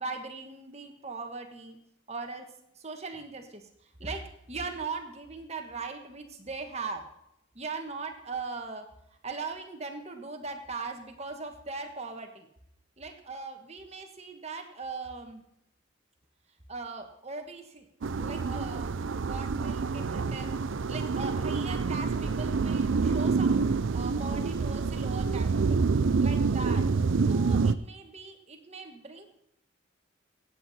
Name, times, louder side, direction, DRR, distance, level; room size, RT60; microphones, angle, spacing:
voice 1, 0.0-1.8 2.1-2.5 2.7-3.6 4.0-7.0 7.5-8.8 9.2-12.5 13.0-15.4 16.7-17.9 18.2-20.5 20.9-23.7 23.9-25.8 26.2-26.9 27.3-29.3, right 4 dB, 35° right, 4 dB, 1.5 m, -39 dB
sound 1, 18.0-27.7, right 4 dB, 75° right, 0.5 m, -27 dB
16.5 x 8.2 x 4.2 m, 0.78 s
head